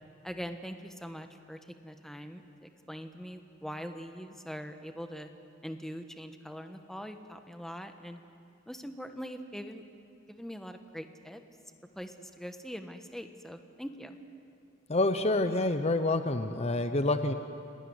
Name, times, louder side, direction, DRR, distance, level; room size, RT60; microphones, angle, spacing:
voice 1, 0.2-5.3 5.6-8.2 8.7-9.8 10.3-11.4 11.9-14.2, equal, ahead, 7 dB, 1.3 m, -42 dB
voice 2, 14.9-17.3, left 2 dB, 35° left, 9 dB, 0.9 m, -27 dB
29.5 x 18.5 x 9.6 m, 2.5 s
head